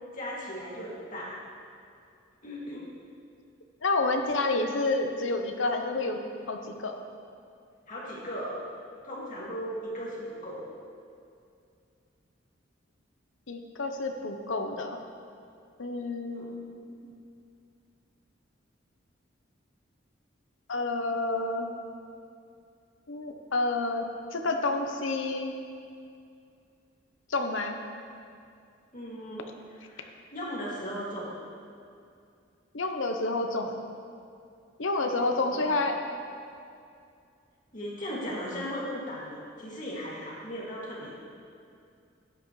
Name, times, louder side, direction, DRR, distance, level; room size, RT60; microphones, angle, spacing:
voice 1, 0.1-1.4 2.4-2.9 7.9-8.7 9.0-10.6 16.3-16.5 28.9-29.4 29.7-31.3 35.0-35.2 35.5-35.7 37.7-41.1, equal, 45° left, -6 dB, 2.4 m, -37 dB
voice 2, 3.8-6.2 6.5-6.9 13.5-15.0 15.8-17.1 20.7-21.7 23.1-25.5 27.3-27.8 32.7-33.8 34.8-36.0, left 2 dB, 85° left, 4 dB, 0.9 m, -29 dB
13.0 x 9.6 x 3.3 m, 2.4 s
head